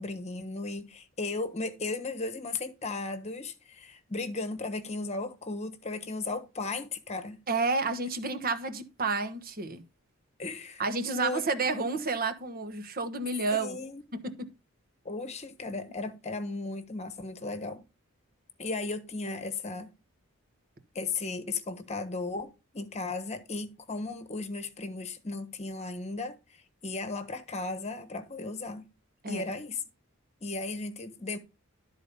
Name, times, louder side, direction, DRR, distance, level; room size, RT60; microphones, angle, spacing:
voice 1, 0.0-7.4 10.4-11.5 13.5-14.0 15.0-17.8 18.6-19.9 20.9-28.9 29.3-29.8 30.4-31.4, left 3 dB, 30° left, 1.2 m, -36 dB
voice 2, 7.5-9.8 10.8-13.8 14.1-14.5 29.2-29.4, right 3 dB, 40° right, 1.2 m, -30 dB
12.5 x 4.2 x 5.3 m
head